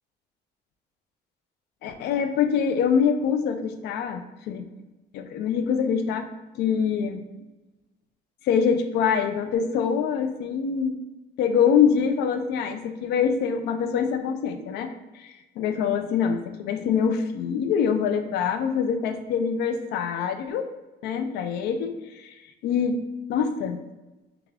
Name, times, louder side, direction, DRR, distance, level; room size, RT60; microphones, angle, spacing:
voice 1, 1.8-4.6 5.1-6.3 6.6-7.2 8.4-11.0 11.4-14.9 15.1-20.7 21.0-22.3 22.6-23.0 23.3-23.8, left 7 dB, 75° left, 8 dB, 0.4 m, -24 dB
3.5 x 2.3 x 3.3 m, 1.1 s
cardioid pair, 110°, 17 cm